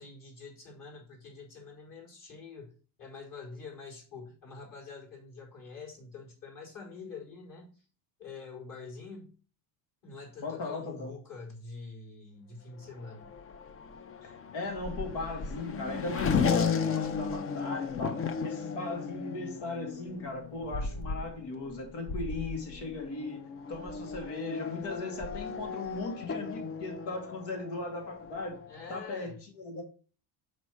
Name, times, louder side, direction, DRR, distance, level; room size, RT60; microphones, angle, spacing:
voice 1, 0.0-2.7 3.0-7.8 8.2-9.3 10.0-13.3 28.7-29.4, left 4 dB, 50° left, 4.5 m, -46 dB
voice 2, 10.4-11.1 14.2-23.4 23.7-28.6 28.9-29.8, left 3 dB, 75° left, 2.5 m, -38 dB
Race car auto racing / Accelerating revving vroom, 12.8-29.0, left 5 dB, 30° left, 0.6 m, -35 dB
5.9 x 5.3 x 6.2 m
cardioid pair, 135°, 42 cm